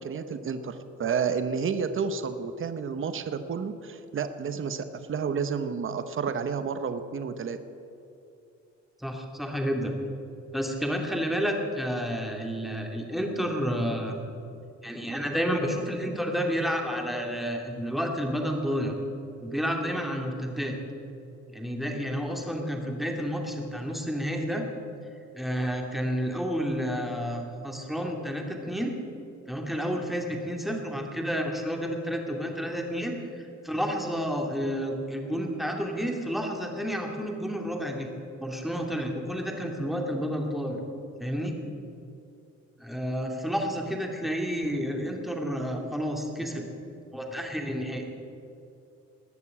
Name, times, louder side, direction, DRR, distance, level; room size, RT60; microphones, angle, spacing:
voice 1, 0.0-7.6, right 6 dB, 45° right, 10 dB, 1.0 m, -30 dB
voice 2, 9.0-9.9 10.5-14.2 14.8-18.9 19.4-20.8 21.5-24.7 25.3-28.9 29.5-38.1 38.4-40.8 41.2-41.5 42.8-46.6 47.1-48.0, equal, ahead, 1 dB, 2.5 m, -30 dB
19.5 x 6.7 x 8.5 m, 2.7 s
cardioid pair, 90°, 30 cm